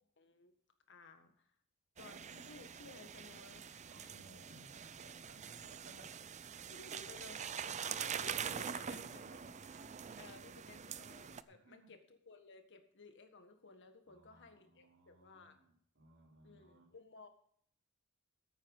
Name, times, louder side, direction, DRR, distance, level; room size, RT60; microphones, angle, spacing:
voice 1, 0.2-0.5 0.9-1.5 2.0-3.9 6.7-9.2 10.2-12.0 12.3-15.6 16.4-17.3, left 3 dB, 55° left, 7 dB, 1.7 m, -57 dB
sound 1, 2.0-11.4, right 7 dB, 35° right, 0.5 m, -45 dB
voice 2, 3.8-6.8 7.7-8.0 8.5-10.8 11.5-11.9 14.1-16.9, right 1 dB, 55° right, -2 dB, 4.3 m, -62 dB
14.5 x 9.1 x 4.9 m, 0.63 s
head